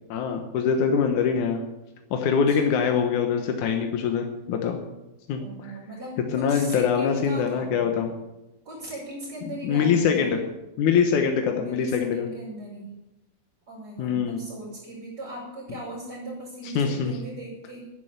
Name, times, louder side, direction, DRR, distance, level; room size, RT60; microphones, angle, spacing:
voice 1, 0.1-1.6 2.1-4.8 5.3-5.7 6.3-8.1 9.6-10.4 10.8-12.3 14.0-14.4 16.8-17.1, left 6 dB, 80° left, 4 dB, 2.7 m, -23 dB
voice 2, 2.5-2.9 5.4-8.0 8.6-10.3 11.5-12.9 13.7-17.8, right 1 dB, 35° right, -8 dB, 6.4 m, -38 dB
12.5 x 11.0 x 8.1 m, 0.95 s
omnidirectional pair, 3.4 m